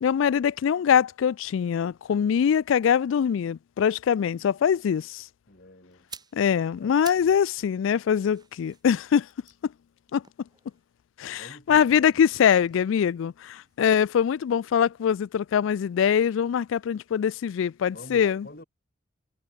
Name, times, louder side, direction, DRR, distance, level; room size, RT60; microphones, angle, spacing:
voice 1, 0.0-5.2 6.3-9.3 10.1-10.2 11.2-18.5, left 8 dB, 70° left, 0.3 m, -23 dB
voice 2, 5.5-6.1 6.8-7.4 11.3-12.2 17.9-18.6, left 1 dB, 50° left, 3.8 m, -47 dB
sound 1, 5.9-7.4 7.7-11.0 11.8-13.8 14.1-14.3, right 6 dB, 20° right, 3.0 m, -49 dB
head